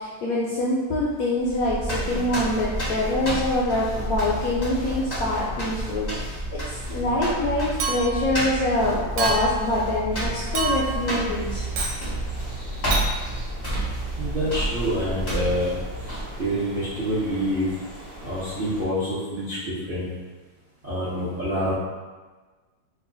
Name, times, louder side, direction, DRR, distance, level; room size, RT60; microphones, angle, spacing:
voice 1, 0.0-11.7, left 1 dB, 75° left, -6 dB, 0.8 m, -25 dB
sound 1, 1.4-16.5, right 1 dB, 35° left, 0.5 m, -30 dB
Chink clink, 7.8-8.3 9.2-9.6 10.5-11.0 11.7-12.0 12.9-13.1, right 3 dB, 85° right, 1.3 m, -27 dB
sound 2, 10.1-18.8, equal, 40° right, 1.0 m, -42 dB
voice 2, 14.2-15.7 16.0-17.7 18.2-20.1 20.8-21.7, equal, 60° right, -11 dB, 0.5 m, -27 dB
3.1 x 2.2 x 3.7 m, 1.3 s
omnidirectional pair, 2.0 m